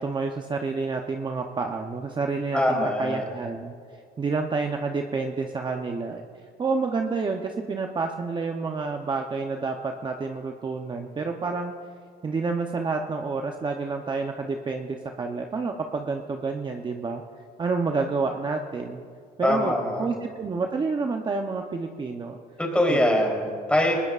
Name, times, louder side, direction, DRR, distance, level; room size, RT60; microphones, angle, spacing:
voice 1, 0.0-3.7 4.2-6.2 6.6-11.7 12.2-17.2 17.6-19.0 19.4-22.4 22.9-23.2, right 4 dB, 25° right, 3 dB, 0.8 m, -29 dB
voice 2, 2.5-3.2 19.4-20.1 22.6-23.9, left 1 dB, 5° left, -1 dB, 3.7 m, -23 dB
20.0 x 20.0 x 2.5 m, 2.2 s
cardioid pair, 110°, 17 cm